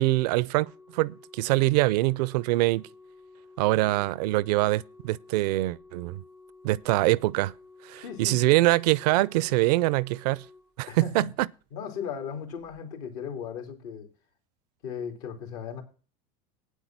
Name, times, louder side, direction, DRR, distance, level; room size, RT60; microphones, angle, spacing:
voice 1, 0.0-2.9 3.6-6.2 6.6-7.5 7.9-10.4 10.8-11.5, right 19 dB, 75° right, 0.5 m, -24 dB
Organ, 0.6-11.5 12.6-12.8, left 3 dB, ahead, 0.5 m, -53 dB
voice 2, 7.9-8.4 10.9-11.3 11.7-14.1 14.8-15.8, left 7 dB, 80° left, 3.0 m, -37 dB
9.1 x 8.1 x 6.0 m
supercardioid pair, 110°, 21 cm